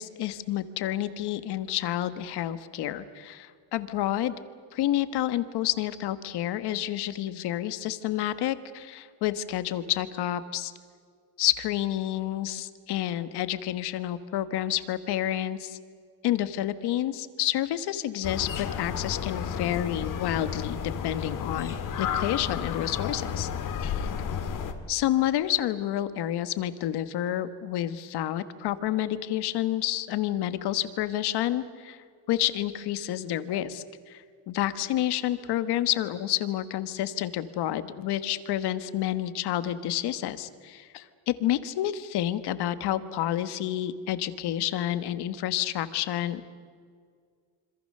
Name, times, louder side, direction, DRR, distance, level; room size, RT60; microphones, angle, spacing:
voice 1, 0.0-4.4 4.7-10.7 11.4-15.8 16.2-20.8 21.0-23.5 23.8-24.1 24.9-46.5, left 12 dB, 60° left, 12 dB, 1.4 m, -29 dB
sound 1, 18.2-24.7, left 7 dB, 45° left, 2.0 m, -32 dB
27.0 x 26.0 x 6.7 m, 2.1 s
cardioid pair, 175°, 45 cm